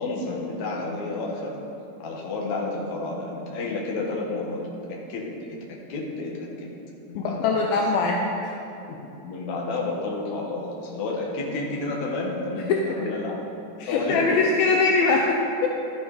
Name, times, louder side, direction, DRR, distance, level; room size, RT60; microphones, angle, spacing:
voice 1, 0.0-1.6 2.0-4.6 4.9-5.3 5.7-6.7 7.1-7.8 8.9-9.0 9.2-13.5 13.9-14.4, left 2 dB, 55° left, -3 dB, 2.2 m, -30 dB
voice 2, 7.2-8.5 12.9-13.0 13.8-15.7, left 3 dB, 80° left, 0 dB, 2.1 m, -22 dB
12.0 x 8.5 x 4.9 m, 2.8 s
omnidirectional pair, 5.0 m